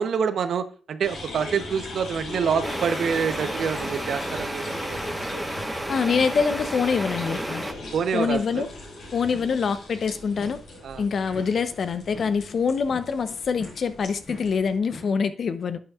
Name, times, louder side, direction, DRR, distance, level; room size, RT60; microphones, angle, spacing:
voice 1, 0.0-5.0 7.9-8.7 10.8-11.0, right 6 dB, 75° right, 0.8 m, -26 dB
sound 1, 1.0-14.8, left 2 dB, 85° left, 4.8 m, -39 dB
sound 2, 2.6-7.7, right 1 dB, 15° right, 1.0 m, -32 dB
voice 2, 5.9-7.6 8.1-8.7 9.1-10.6 11.0-15.8, left 5 dB, 65° left, 0.8 m, -25 dB
sound 3, 9.3-9.8 10.3-10.9 11.3-15.2, left 2 dB, 40° left, 4.1 m, -44 dB
11.0 x 8.8 x 2.4 m
supercardioid pair, 50°, 0 cm